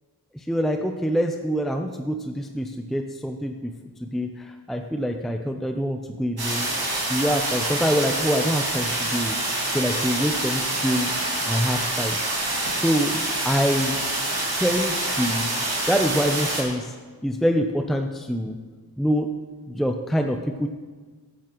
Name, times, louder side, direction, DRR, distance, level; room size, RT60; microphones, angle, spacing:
voice 1, 0.3-3.6 4.0-6.7 7.1-9.4 9.7-11.1 11.4-12.2 12.7-14.0 14.6-15.5 15.9-16.9 17.2-18.6 19.0-19.3 19.7-20.7, equal, ahead, 4 dB, 0.6 m, -25 dB
sound 1, 6.4-16.6, right 2 dB, 65° right, 2.8 m, -26 dB
14.5 x 11.0 x 3.0 m, 1.4 s
wide cardioid pair, 85°, 39 cm